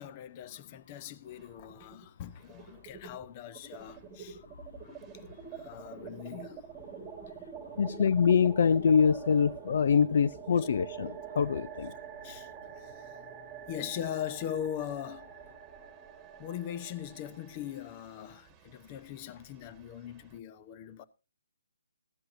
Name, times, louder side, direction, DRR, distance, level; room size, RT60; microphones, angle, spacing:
voice 1, 0.0-4.4 5.5-6.6 12.2-12.5 12.8-15.3 16.4-21.0, left 10 dB, 30° left, 0.9 m, -40 dB
sound 1, 1.3-2.1 2.3-20.4, right 7 dB, 15° right, 1.8 m, -47 dB
voice 2, 7.8-11.9, left 6 dB, 55° left, 0.5 m, -25 dB
15.5 x 12.5 x 2.7 m
hypercardioid pair, 145°, 0 cm